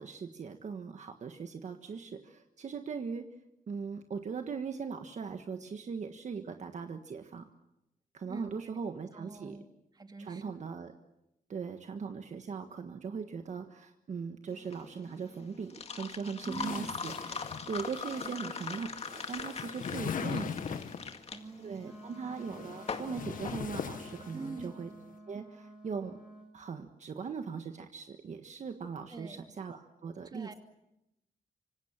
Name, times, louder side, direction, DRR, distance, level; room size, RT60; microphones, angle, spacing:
voice 1, 0.0-3.2 3.7-7.5 8.1-9.6 10.2-10.9 11.5-20.5 21.6-24.9 25.3-26.2 26.5-30.5, right 5 dB, 50° right, 6 dB, 1.5 m, -40 dB
voice 2, 8.2-8.8 9.1-9.7 9.9-10.6 16.4-17.0 18.1-18.3 20.0-21.0 21.3-21.8 24.3-24.9 29.1-29.4 30.2-30.5, right 3 dB, 25° right, 6 dB, 2.4 m, -45 dB
sound 1, 14.5-24.4, left 5 dB, 45° left, 2.1 m, -41 dB
sound 2, 16.5-21.2 22.2-24.7, left 7 dB, 65° left, 1.6 m, -41 dB
Wind instrument woodwind instrument, 21.7-26.5, right 1 dB, 5° right, 4.9 m, -51 dB
26.0 x 25.5 x 7.4 m, 0.88 s
wide cardioid pair, 160°, 15 cm